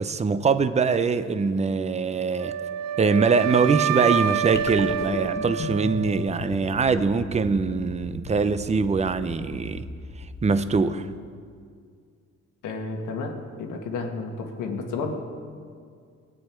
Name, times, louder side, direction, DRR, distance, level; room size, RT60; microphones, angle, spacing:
voice 1, 0.0-2.5 3.0-9.8 10.4-11.1, right 4 dB, 20° right, 11 dB, 0.6 m, -23 dB
Wind instrument woodwind instrument, 2.4-6.5, right 9 dB, 65° right, 0.7 m, -27 dB
sound 1, 4.5-11.1, left 2 dB, 35° left, 1.1 m, -37 dB
voice 2, 12.6-15.1, left 4 dB, 85° left, 3 dB, 1.6 m, -31 dB
20.0 x 8.7 x 4.5 m, 2.2 s
cardioid pair, 90°, 30 cm